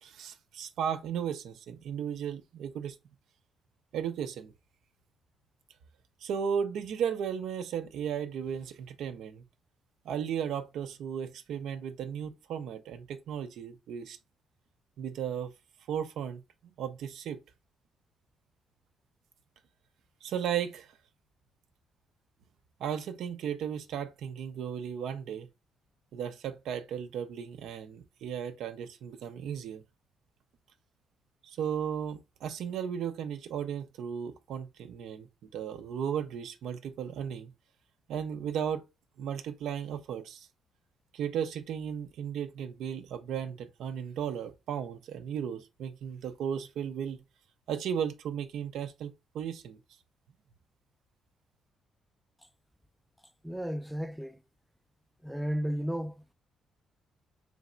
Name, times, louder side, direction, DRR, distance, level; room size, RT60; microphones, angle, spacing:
voice 1, 0.0-3.0 3.9-4.5 6.2-9.5 10.0-14.2 15.0-15.5 15.9-16.4 16.8-17.4 20.2-20.9 22.8-25.5 26.1-29.8 31.4-37.5 38.1-38.8 39.2-40.5 41.1-47.2 47.7-49.8, right 8 dB, 80° right, 0.6 m, -35 dB
voice 2, 53.4-54.4 55.2-56.3, equal, ahead, 0.3 m, -33 dB
3.4 x 3.2 x 3.7 m
cardioid pair, 90°, 0 cm